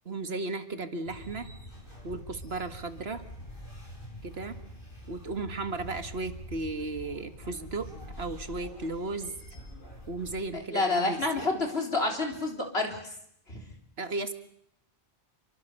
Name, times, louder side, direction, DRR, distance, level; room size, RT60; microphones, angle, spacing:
voice 1, 0.1-1.5 2.0-3.2 4.2-4.5 5.1-7.9 8.2-9.3 10.1-11.4 14.0-14.3, right 2 dB, 80° right, 9 dB, 2.1 m, -35 dB
sound 1, 1.1-10.5, equal, 55° left, 8.4 m, -45 dB
voice 2, 10.5-13.1 13.5-13.6, left 3 dB, 80° left, 3 dB, 4.2 m, -29 dB
28.5 x 23.5 x 6.7 m, 0.72 s
omnidirectional pair, 1.0 m